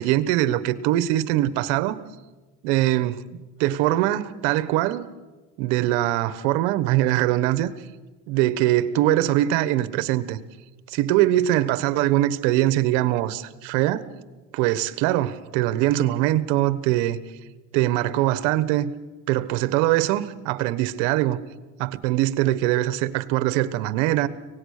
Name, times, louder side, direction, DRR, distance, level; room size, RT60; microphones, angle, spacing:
voice 1, 0.0-2.0 2.6-5.1 5.6-7.7 8.3-10.4 10.9-14.0 14.5-17.2 17.7-18.9 19.3-21.4 21.8-24.3, right 14 dB, 75° right, 1.3 m, -22 dB
24.5 x 18.0 x 6.6 m
supercardioid pair, 120°, 36 cm